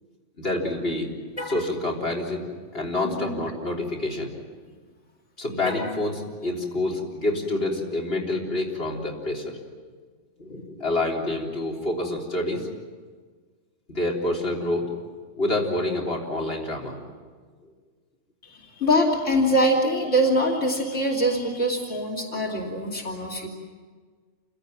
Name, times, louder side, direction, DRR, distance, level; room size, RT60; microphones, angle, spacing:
voice 1, 0.4-1.1 1.4-2.4 2.7-4.3 5.4-9.6 10.4-12.6 13.9-14.9 15.4-17.1 22.3-22.4, left 2 dB, 55° left, -3 dB, 3.9 m, -27 dB
Car, 1.3-1.7 5.6-6.1, left 2 dB, 30° left, 7.4 m, -36 dB
voice 2, 3.0-3.5 18.4-23.5, equal, 85° left, -2 dB, 3.4 m, -24 dB
28.5 x 17.0 x 9.2 m, 1.5 s
omnidirectional pair, 1.2 m